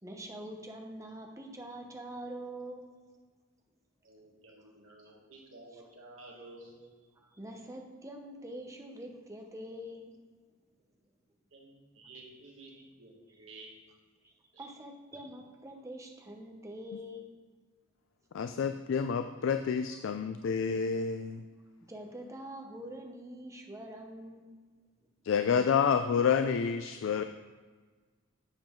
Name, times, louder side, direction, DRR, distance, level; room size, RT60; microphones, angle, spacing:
voice 1, 0.0-2.9 5.7-5.8 7.2-10.2 12.8-12.9 14.2-17.3 21.8-24.5, right 1 dB, 15° right, 2 dB, 0.8 m, -45 dB
voice 2, 4.0-6.9 11.5-13.8 14.5-14.7, right 2 dB, 80° right, -1 dB, 1.7 m, -52 dB
voice 3, 18.3-21.4 25.2-27.2, left 6 dB, 65° left, 8 dB, 0.3 m, -29 dB
7.4 x 7.2 x 3.7 m, 1.4 s
head